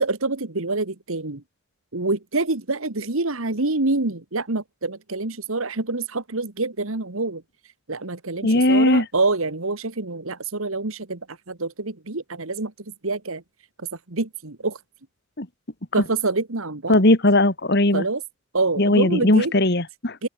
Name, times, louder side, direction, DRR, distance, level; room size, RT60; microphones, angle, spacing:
voice 1, 0.0-1.4 1.9-7.4 7.9-11.2 11.5-12.7 13.0-13.4 13.8-14.8 15.9-17.0 17.9-18.2 18.5-19.5 20.2-20.3, right 3 dB, 75° right, 1.8 m, -26 dB
voice 2, 8.4-9.0 15.4-15.5 16.9-18.0 18.8-20.2, left 1 dB, 50° left, 2.2 m, -18 dB
open air
head